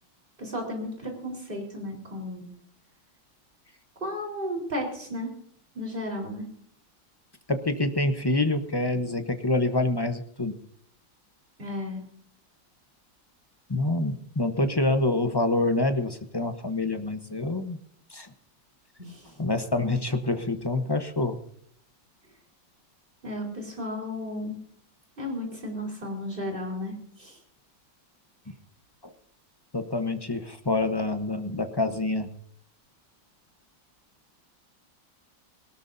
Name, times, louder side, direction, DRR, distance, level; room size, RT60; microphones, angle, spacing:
voice 1, 0.4-2.5 4.0-5.3 5.7-6.5 11.6-12.0 19.0-19.3 23.2-24.6 25.2-27.4, left 1 dB, 25° right, 0 dB, 4.2 m, -34 dB
voice 2, 7.5-10.5 13.7-17.8 18.1-18.3 19.4-21.4 29.0-29.1 29.7-32.3, left 2 dB, 25° left, 7 dB, 0.5 m, -26 dB
21.5 x 19.0 x 2.7 m, 0.63 s
omnidirectional pair, 2.1 m